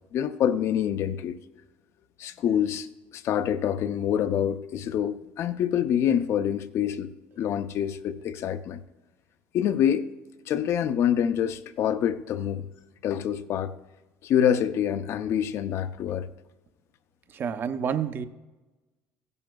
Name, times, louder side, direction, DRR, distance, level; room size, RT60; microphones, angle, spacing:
voice 1, 0.1-1.4 2.2-2.9 3.1-8.8 9.5-10.1 10.5-12.7 13.0-13.7 14.2-16.3, left 9 dB, 55° left, 0.6 m, -26 dB
voice 2, 17.3-18.3, right 7 dB, 40° right, 0.7 m, -29 dB
16.0 x 11.0 x 2.3 m
cardioid pair, 115°, 5 cm